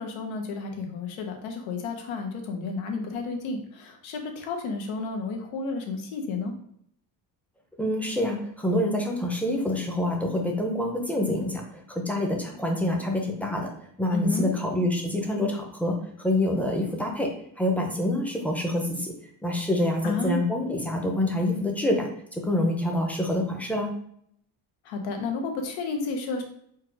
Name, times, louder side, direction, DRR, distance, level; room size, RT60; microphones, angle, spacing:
voice 1, 0.0-6.5 14.1-14.5 20.0-20.4 24.8-26.4, left 3 dB, 80° left, 3 dB, 1.1 m, -31 dB
voice 2, 7.8-11.6 11.9-13.7 14.0-17.3 17.6-19.1 19.4-23.9, left 1 dB, 5° left, 0 dB, 0.6 m, -26 dB
4.5 x 2.4 x 4.6 m, 0.68 s
cardioid pair, 140°, 46 cm